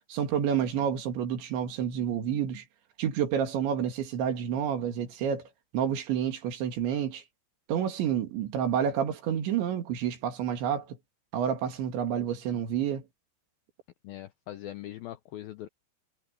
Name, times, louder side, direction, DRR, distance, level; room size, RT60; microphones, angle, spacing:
voice 1, 0.1-2.6 3.0-5.5 5.7-7.2 7.7-11.0 11.3-13.0, right 8 dB, 80° right, 4.8 m, -29 dB
voice 2, 14.0-15.7, left 13 dB, 80° left, 2.1 m, -41 dB
omnidirectional pair, 5.2 m